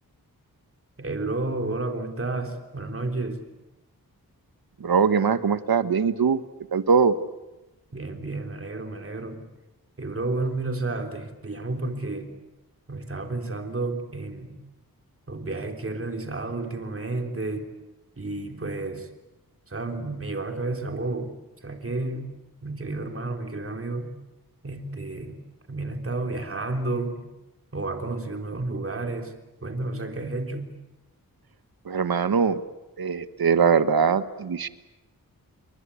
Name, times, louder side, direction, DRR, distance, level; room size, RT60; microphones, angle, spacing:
voice 1, 1.0-3.4 7.9-9.4 10.0-12.3 12.9-14.6 15.3-17.7 18.2-19.1 19.7-21.3 21.6-22.3 22.6-24.2 24.6-25.4 25.7-27.3 27.7-29.4 29.6-30.7, right 2 dB, 40° right, 5 dB, 3.6 m, -31 dB
voice 2, 4.8-6.4 6.7-7.1 31.9-32.6 33.0-34.7, right 6 dB, 80° right, 12 dB, 1.4 m, -21 dB
29.5 x 23.0 x 8.5 m, 1.0 s
wide cardioid pair, 100°, 36 cm